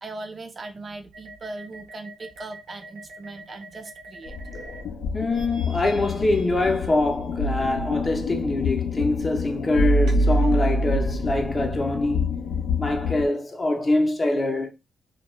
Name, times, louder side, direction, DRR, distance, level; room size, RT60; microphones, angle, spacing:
voice 1, 0.0-4.4, right 3 dB, 40° right, 0.4 m, -39 dB
sound 1, 1.1-4.8 5.3-7.5 10.1-11.1, right 2 dB, 90° right, 0.8 m, -45 dB
sound 2, 4.3-13.3, left 2 dB, 75° left, 0.5 m, -26 dB
voice 2, 5.1-12.3 12.8-14.7, left 2 dB, 30° left, 0.6 m, -24 dB
2.3 x 2.2 x 3.0 m
cardioid pair, 80°, 0 cm